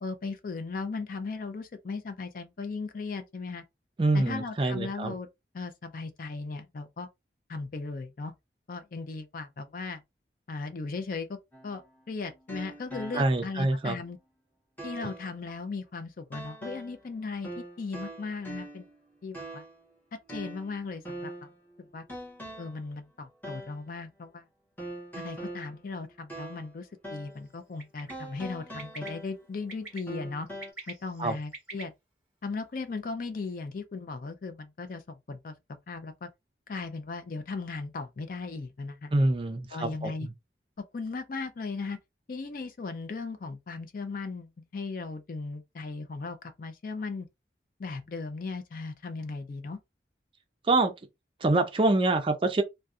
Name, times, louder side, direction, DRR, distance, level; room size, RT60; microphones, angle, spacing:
voice 1, 0.0-3.6 4.1-5.3 5.5-7.1 7.5-8.3 8.7-10.0 10.5-11.4 11.6-14.2 14.8-18.9 19.2-19.6 20.3-21.5 21.9-22.0 22.6-24.4 25.2-30.5 30.9-31.9 32.4-35.5 35.9-36.3 36.7-39.1 39.7-40.3 40.9-42.0 42.3-47.3 47.8-49.8, left 4 dB, 50° left, 0.4 m, -37 dB
voice 2, 4.0-5.1 13.1-14.0 31.2-31.4 39.1-40.3 50.6-50.9 51.4-52.6, right 2 dB, 30° right, 0.4 m, -25 dB
sound 1, 11.5-13.6 14.0-14.1 14.8-15.3 16.3-17.1 17.4-19.0 19.3-19.8 20.3-21.6 22.1-22.9 23.4-23.9 24.8-26.8 27.0-27.4 28.1-29.6 30.1-30.7, right 1 dB, 10° left, 0.7 m, -42 dB
Bird, 27.8-28.1 28.8-29.1 29.7-30.0 30.5-31.8, right 3 dB, 5° right, 1.3 m, -43 dB
2.6 x 2.1 x 2.3 m
head